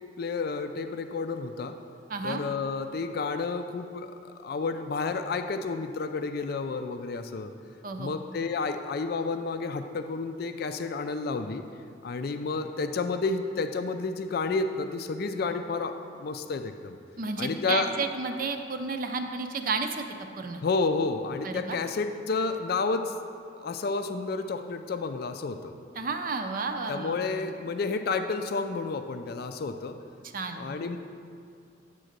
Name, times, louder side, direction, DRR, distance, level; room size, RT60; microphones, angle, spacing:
voice 1, 0.2-1.7 2.2-7.5 8.0-11.6 12.0-17.0 17.4-17.9 20.6-23.1 23.6-25.7 26.9-30.0 30.6-31.0, left 4 dB, 55° left, 8 dB, 0.4 m, -30 dB
voice 2, 2.1-2.4 7.8-8.1 17.2-20.0 20.4-20.6 21.4-21.8 25.9-27.3 30.3-30.7, right 4 dB, 50° right, 6 dB, 0.5 m, -32 dB
8.9 x 3.8 x 6.5 m, 2.4 s
head